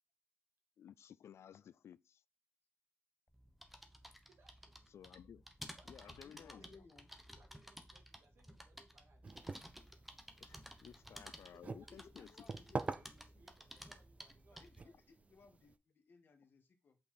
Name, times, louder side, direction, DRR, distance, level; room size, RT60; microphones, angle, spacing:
voice 1, 0.8-2.2 4.9-5.4 5.9-6.8 10.4-12.3, left 9 dB, 85° left, 0.4 m, -57 dB
sound 1, 3.3-14.9, equal, 5° right, 1.0 m, -55 dB
voice 2, 4.3-4.9 5.8-7.0 7.3-9.3 10.7-10.9 11.5-15.0, right 3 dB, 65° right, 2.0 m, -69 dB
voice 3, 6.2-7.1 11.6-13.4 14.5-17.0, left 4 dB, 55° left, 1.7 m, -63 dB
sound 2, 9.2-15.8, right 4 dB, 30° right, 0.4 m, -47 dB
8.3 x 4.8 x 4.3 m
wide cardioid pair, 160°, 4 cm